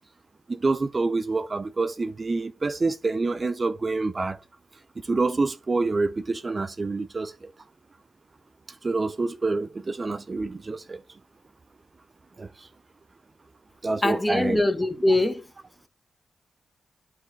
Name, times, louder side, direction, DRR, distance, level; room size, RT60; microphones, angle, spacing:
voice 1, 0.5-4.4 5.0-7.5 8.8-11.0 12.4-12.7 13.8-14.6, right 3 dB, 40° right, 0.5 m, -27 dB
voice 2, 14.0-15.4, left 1 dB, 20° left, 1.0 m, -22 dB
10.5 x 4.8 x 2.3 m
cardioid pair, 55°, 0 cm